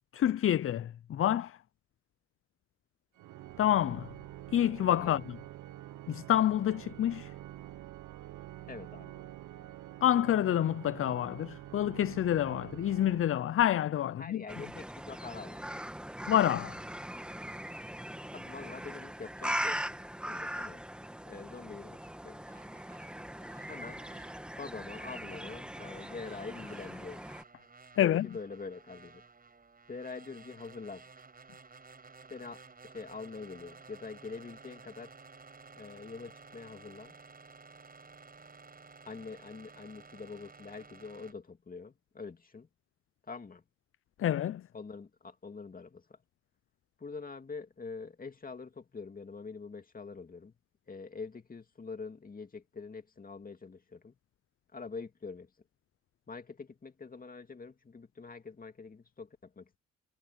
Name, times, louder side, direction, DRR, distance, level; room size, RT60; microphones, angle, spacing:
voice 1, 0.1-1.6 3.6-4.1 4.5-5.4 6.1-7.3 10.0-14.4 16.3-16.8 28.0-28.3 44.2-44.6, left 11 dB, 45° left, 0.6 m, -28 dB
Organ, 3.1-13.9, right 14 dB, 80° right, 1.1 m, -47 dB
voice 2, 8.7-9.3 14.2-15.9 18.3-19.8 20.2-20.9 21.3-22.5 23.7-24.0 24.6-27.2 28.0-29.2 29.9-31.0 32.3-35.1 35.7-37.1 39.1-42.7 43.2-43.6 44.7-46.2 47.0-50.6 50.9-54.2 54.7-55.5 56.3-59.8, left 4 dB, 30° left, 2.3 m, -45 dB
sound 1, 14.5-27.4, equal, 5° right, 1.8 m, -40 dB
sound 2, 22.5-41.3, right 4 dB, 30° right, 5.8 m, -55 dB
cardioid pair, 90°, 30 cm